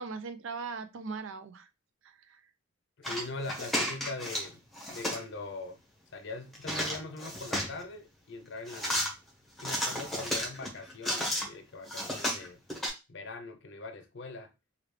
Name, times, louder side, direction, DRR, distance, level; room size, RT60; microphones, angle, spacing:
voice 1, 0.0-1.7 2.0-2.4, right 4 dB, 70° right, 0.5 m, -39 dB
voice 2, 3.0-4.6 4.9-5.8 6.1-9.1 9.6-12.6 13.1-14.5, left 3 dB, 60° left, 0.6 m, -41 dB
sound 1, 3.0-4.5 4.7-5.2 6.5-7.8 8.7-9.1 9.6-11.5 11.9-12.9, equal, ahead, 0.9 m, -33 dB
3.2 x 2.4 x 3.2 m
head